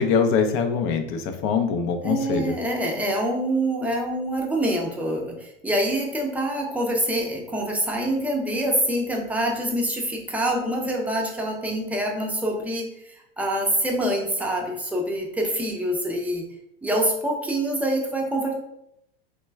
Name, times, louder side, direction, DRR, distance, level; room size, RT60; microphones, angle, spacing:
voice 1, 0.0-2.5, left 6 dB, 45° left, 6 dB, 0.5 m, -23 dB
voice 2, 2.0-16.4 16.8-18.5, right 1 dB, 5° right, 0 dB, 0.5 m, -25 dB
3.1 x 2.2 x 3.3 m, 0.78 s
supercardioid pair, 115°, 30 cm